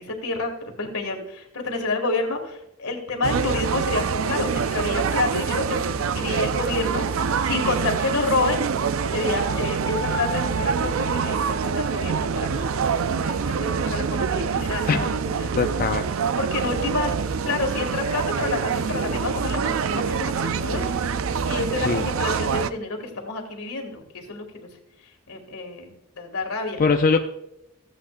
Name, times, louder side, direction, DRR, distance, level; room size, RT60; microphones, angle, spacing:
voice 1, 0.0-8.6 9.1-12.7 13.2-15.5 16.4-17.2 17.4-21.1 21.4-24.7 25.3-26.8, left 3 dB, 85° left, 3 dB, 2.1 m, -29 dB
sound 1, 3.2-22.7, right 6 dB, 65° right, 0.4 m, -25 dB
voice 2, 15.6-16.0 21.8-22.0 26.8-27.2, left 4 dB, 40° left, 5 dB, 0.4 m, -21 dB
15.0 x 9.0 x 2.5 m, 0.84 s
head